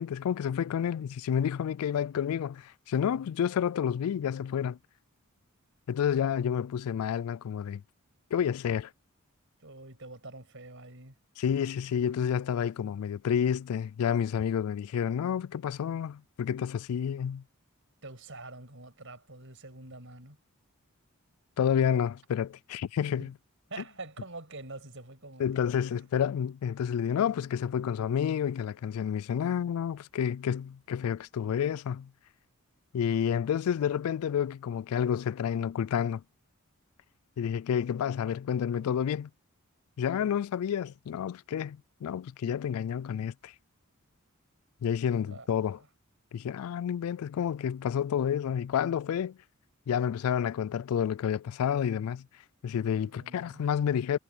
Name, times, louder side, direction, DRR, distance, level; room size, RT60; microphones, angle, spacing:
voice 1, 0.0-4.8 5.9-7.8 8.3-8.9 11.4-17.4 21.6-23.3 25.4-32.1 32.9-36.2 37.4-39.3 40.0-43.5 44.8-45.8 46.3-49.4 49.9-52.3 52.6-54.2, left 8 dB, 75° left, 0.3 m, -29 dB
voice 2, 9.6-11.2 18.0-20.4 23.2-23.3 23.7-26.1 45.2-45.9 53.0-53.8, right 2 dB, 60° right, 7.1 m, -46 dB
head